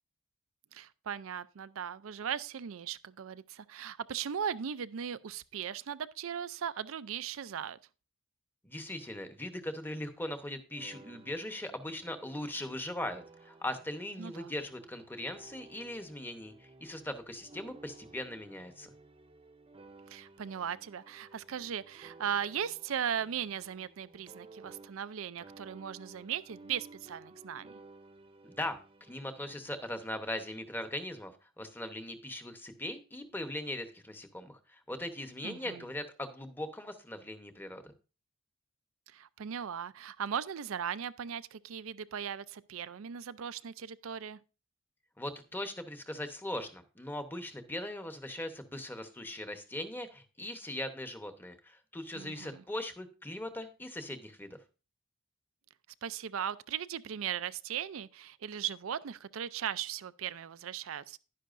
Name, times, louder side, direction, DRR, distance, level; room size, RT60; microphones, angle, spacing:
voice 1, 0.7-7.8 14.2-14.5 20.1-27.7 35.4-35.8 39.1-44.4 52.1-52.6 56.0-61.2, right 8 dB, 65° right, 0.4 m, -38 dB
voice 2, 8.6-18.9 28.4-37.8 45.2-54.6, left 1 dB, 10° left, 0.9 m, -40 dB
sound 1, 10.7-25.2 25.4-29.9, right 3 dB, 25° right, 0.7 m, -56 dB
11.0 x 10.0 x 2.5 m
head